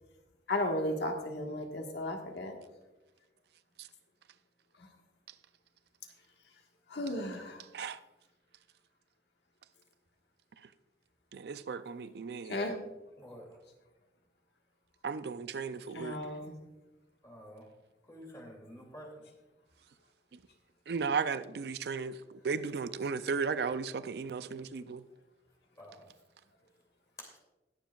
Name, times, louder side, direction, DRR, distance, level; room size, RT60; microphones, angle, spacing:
voice 1, 0.5-2.5 6.9-7.6 12.5-12.7 15.9-16.5, left 1 dB, 70° left, 1.4 m, -34 dB
voice 2, 11.3-12.6 15.0-16.2 20.9-25.0, right 5 dB, 65° right, 0.4 m, -35 dB
voice 3, 17.2-17.6 18.1-19.1 25.8-26.0 27.2-27.3, equal, 20° left, 2.4 m, -49 dB
20.5 x 7.2 x 2.3 m
head